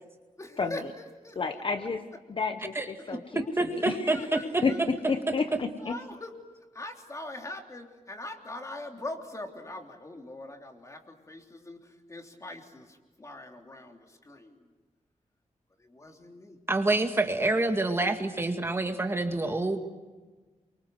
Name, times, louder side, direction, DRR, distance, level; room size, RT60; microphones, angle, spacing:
voice 1, 0.4-2.2 2.8-3.5 3.9-4.8 5.1-5.2 5.8-6.3 6.7-14.7 15.8-16.6 17.4-17.9, left 2 dB, 25° left, 3 dB, 3.4 m, -43 dB
voice 2, 1.4-2.0 2.3-3.4 3.8-4.1 4.6-4.7 5.1-5.9, left 4 dB, 45° left, 7 dB, 1.2 m, -30 dB
voice 3, 3.6-4.6 16.7-19.8, right 2 dB, 20° right, 4 dB, 2.0 m, -27 dB
29.0 x 24.5 x 8.0 m, 1.3 s
wide cardioid pair, 160°, 13 cm